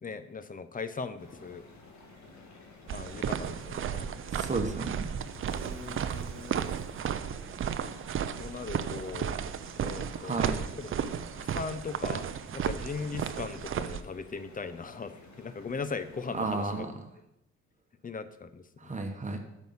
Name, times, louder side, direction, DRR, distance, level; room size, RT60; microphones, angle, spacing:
voice 1, 0.0-1.6 2.9-4.1 5.6-6.7 8.4-9.4 9.8-10.9 11.4-12.3 12.5-16.9 18.0-19.0, left 4 dB, 30° left, 12 dB, 0.6 m, -39 dB
sound 1, 1.2-16.8, left 3 dB, 70° left, 1.9 m, -53 dB
sound 2, 2.9-14.0, right 8 dB, 45° right, 0.5 m, -34 dB
voice 2, 4.3-5.2 10.1-10.6 16.3-16.9 18.8-19.4, right 3 dB, 25° right, 5 dB, 1.2 m, -33 dB
6.3 x 5.3 x 7.0 m, 0.88 s
cardioid pair, 90°, 30 cm